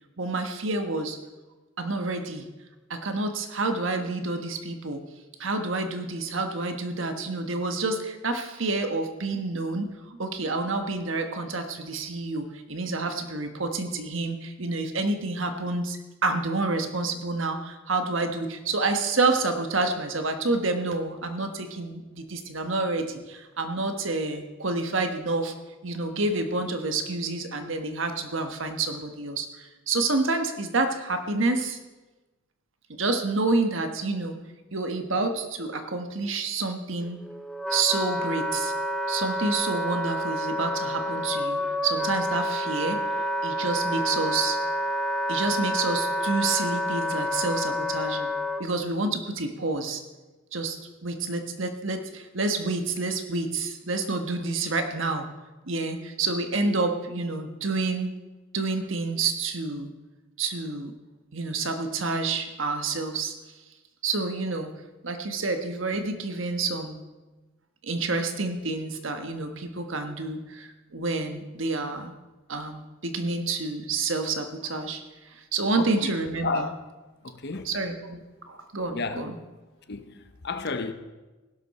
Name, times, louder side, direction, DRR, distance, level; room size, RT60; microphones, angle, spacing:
voice 1, 0.2-1.2 1.8-2.5 2.9-5.0 5.4-25.5 25.8-31.8 33.0-34.4 34.7-37.2 37.7-38.7 39.1-43.0 43.4-44.6 45.3-48.3 48.6-50.0 50.5-55.3 55.7-58.1 58.5-59.9 60.4-60.9 61.3-63.3 64.0-64.7 65.0-67.0 67.8-72.1 72.5-76.7 77.6-78.2 78.5-79.4, right 3 dB, 65° right, 1.4 m, -28 dB
Wind instrument woodwind instrument, 37.0-48.6, equal, ahead, 0.7 m, -29 dB
voice 2, 75.8-76.1 76.4-76.8 77.2-77.7 78.9-79.2 79.9-80.9, left 3 dB, 55° left, 0.9 m, -31 dB
16.0 x 12.0 x 4.3 m
head